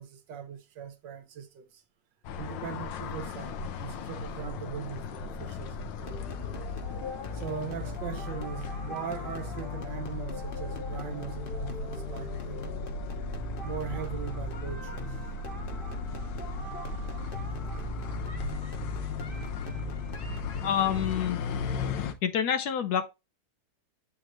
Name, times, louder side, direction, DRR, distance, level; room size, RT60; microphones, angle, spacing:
voice 1, 0.0-1.8 2.4-6.3 7.3-12.6 13.6-15.2, right 8 dB, 80° right, 1.5 m, -40 dB
sound 1, 2.2-22.1, left 4 dB, 85° left, 1.4 m, -38 dB
sound 2, 6.1-21.0, left 3 dB, 35° left, 1.0 m, -38 dB
voice 2, 20.6-21.4 22.2-23.1, left 8 dB, 70° left, 1.1 m, -27 dB
7.7 x 4.3 x 3.0 m
omnidirectional pair, 1.9 m